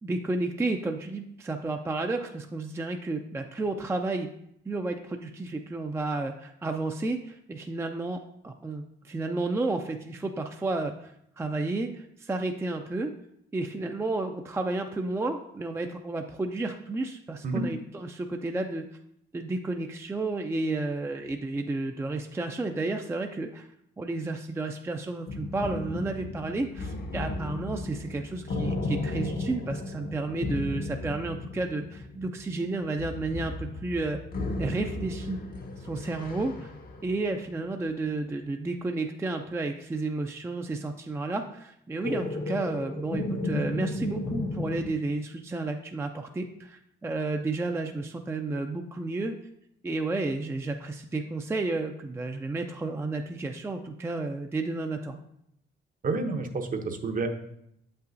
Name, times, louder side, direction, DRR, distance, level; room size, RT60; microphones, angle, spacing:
voice 1, 0.0-4.3 4.7-11.1 11.4-13.1 13.5-18.8 19.3-23.7 24.0-34.2 34.6-35.4 35.8-36.7 37.0-49.3 49.8-55.2, right 2 dB, 15° right, 5 dB, 0.4 m, -32 dB
sound 1, 25.3-37.5 42.0-44.9, left 2 dB, 50° left, 0.7 m, -34 dB
voice 2, 56.0-57.3, right 3 dB, 45° right, 6 dB, 0.8 m, -29 dB
7.2 x 5.5 x 2.6 m, 0.75 s
cardioid pair, 90°, 20 cm